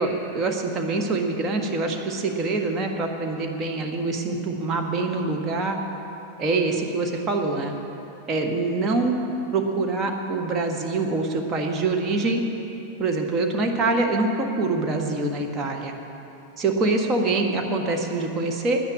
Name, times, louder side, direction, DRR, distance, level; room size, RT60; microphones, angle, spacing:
voice 1, 0.0-5.8 6.4-7.7 8.3-9.1 9.5-12.4 13.0-15.9 16.6-18.8, right 3 dB, 25° right, 2 dB, 1.5 m, -25 dB
9.6 x 9.5 x 9.8 m, 2.9 s
figure-of-eight pair, 90°, 0 cm